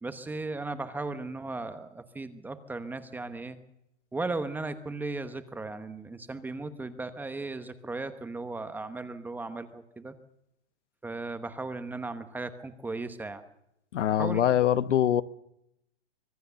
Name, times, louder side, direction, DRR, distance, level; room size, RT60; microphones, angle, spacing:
voice 1, 0.0-3.6 4.1-10.1 11.0-13.4 14.1-14.4, right 3 dB, 5° right, 0.9 m, -36 dB
voice 2, 13.9-15.2, left 10 dB, 80° left, 1.1 m, -23 dB
25.0 x 18.5 x 7.0 m
hypercardioid pair, 155°, 35 cm